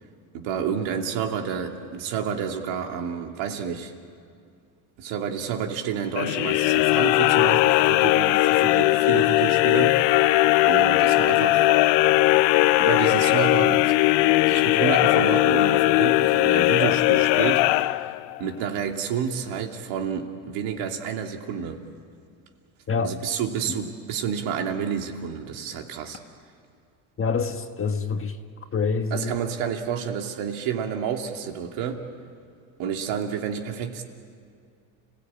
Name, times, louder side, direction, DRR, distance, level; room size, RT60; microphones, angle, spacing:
voice 1, 0.3-3.9 5.0-10.4 10.7-11.7 12.8-13.9 14.5-18.1 18.4-21.8 23.0-26.2 29.1-32.1 32.8-34.0, right 7 dB, 70° right, 2.7 m, -29 dB
sound 1, 6.1-18.4, left 18 dB, 65° left, 0.7 m, -19 dB
voice 2, 27.2-28.4 28.7-29.3, left 5 dB, 25° left, 1.6 m, -26 dB
30.0 x 17.0 x 8.9 m
supercardioid pair, 115°, 48 cm